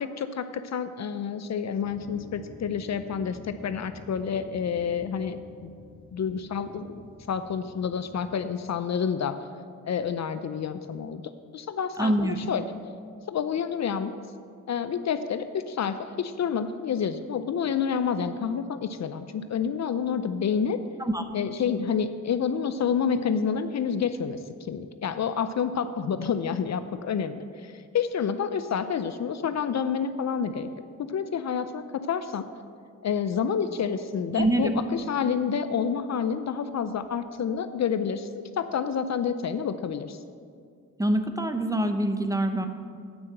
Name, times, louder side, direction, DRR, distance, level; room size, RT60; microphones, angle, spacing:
voice 1, 0.0-5.7 6.1-7.0 7.3-9.4 9.8-11.2 11.5-12.6 13.3-14.1 14.7-20.8 21.3-30.7 31.1-32.4 33.0-40.2, left 7 dB, 55° left, 11 dB, 0.6 m, -29 dB
sound 1, 1.8-8.4, left 2 dB, 15° left, 1.3 m, -48 dB
voice 2, 12.0-12.4 21.0-21.2 34.4-34.8 41.0-42.7, right 1 dB, 10° right, 7 dB, 0.8 m, -25 dB
9.6 x 5.7 x 7.7 m, 2.3 s
cardioid pair, 70°, 33 cm